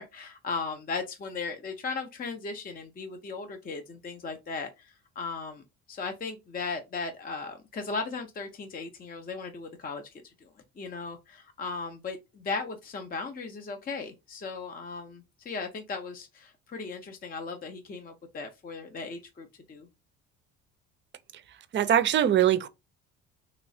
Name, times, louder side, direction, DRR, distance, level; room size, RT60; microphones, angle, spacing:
voice 1, 0.0-5.6 5.9-10.5 10.8-19.9, left 4 dB, 25° left, 0.6 m, -37 dB
voice 2, 21.7-22.7, right 10 dB, 35° right, 0.4 m, -22 dB
3.0 x 2.9 x 2.7 m
hypercardioid pair, 60°, 35 cm